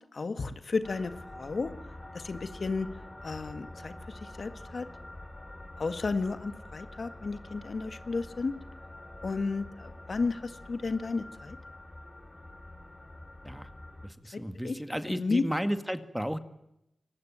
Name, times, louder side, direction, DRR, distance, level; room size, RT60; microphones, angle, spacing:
voice 1, 0.1-1.7 2.1-2.9 3.2-4.9 5.8-8.6 9.2-11.6 14.3-14.8 15.1-15.4, left 4 dB, 55° left, 10 dB, 1.8 m, -33 dB
sound 1, 0.8-14.1, left 1 dB, 20° left, 4.1 m, -47 dB
voice 2, 14.0-16.4, equal, 5° right, 10 dB, 2.0 m, -33 dB
25.0 x 19.5 x 8.8 m, 0.85 s
cardioid pair, 60°, 0 cm